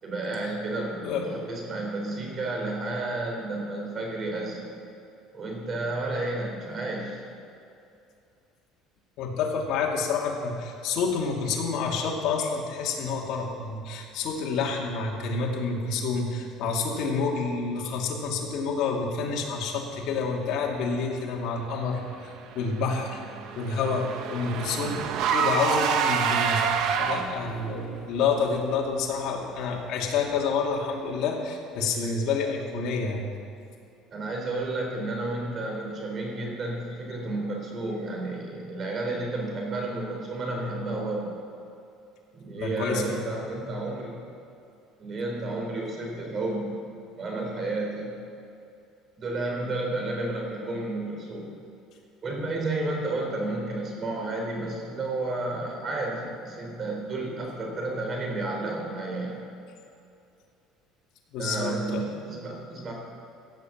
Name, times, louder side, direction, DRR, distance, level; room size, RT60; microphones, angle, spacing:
voice 1, 0.0-4.7 5.3-7.2 27.1-27.3 34.1-41.3 42.3-44.2 45.0-46.8 47.2-48.2 49.2-51.5 52.2-59.4 61.4-62.9, right 2 dB, 35° right, 0 dB, 3.8 m, -31 dB
voice 2, 9.2-23.2 23.6-25.0 25.3-33.3 42.5-43.2 61.3-62.1, left 4 dB, 60° left, -1 dB, 2.5 m, -28 dB
Car / Engine, 22.5-27.5, right 6 dB, 65° right, 1.2 m, -27 dB
16.0 x 7.6 x 7.3 m, 2.6 s
cardioid pair, 140°, 0 cm